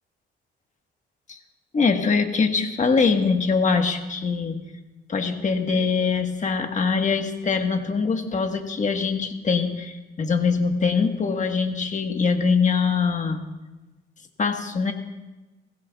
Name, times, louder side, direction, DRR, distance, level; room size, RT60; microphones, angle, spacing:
voice 1, 1.7-4.6 5.1-13.4 14.4-14.9, left 5 dB, 40° left, 5 dB, 1.4 m, -23 dB
21.0 x 16.0 x 2.4 m, 1.1 s
cardioid pair, 90°, 20 cm